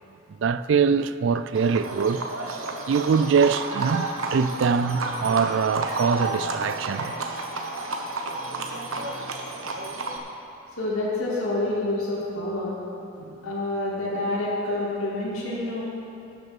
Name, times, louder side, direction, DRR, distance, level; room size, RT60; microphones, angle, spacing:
voice 1, 0.4-2.2 2.9-7.1 13.3-13.4, right 6 dB, 60° right, 0.3 m, -23 dB
Livestock farm animals working animals, 1.5-10.2, right 3 dB, 80° right, 1.0 m, -31 dB
voice 2, 10.8-12.7 13.4-15.8, left 2 dB, 85° left, 2.3 m, -27 dB
13.0 x 6.6 x 6.0 m
head